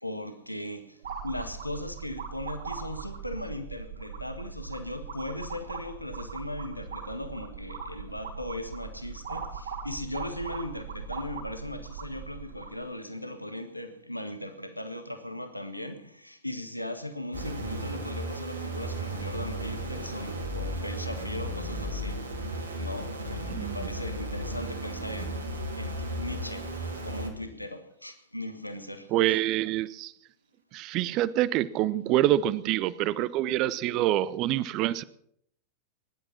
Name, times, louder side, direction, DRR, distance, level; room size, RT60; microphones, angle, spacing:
voice 1, 0.0-22.3 22.7-26.8 27.0-29.1, left 1 dB, 90° left, 1.5 m, -38 dB
sound 1, 1.0-12.8, right 6 dB, 65° right, 4.1 m, -39 dB
sound 2, 17.3-27.3, right 1 dB, 85° right, 3.5 m, -35 dB
voice 2, 29.1-30.1 30.7-35.0, right 14 dB, 40° right, 0.8 m, -26 dB
20.0 x 11.0 x 5.9 m
figure-of-eight pair, 90°, 0 cm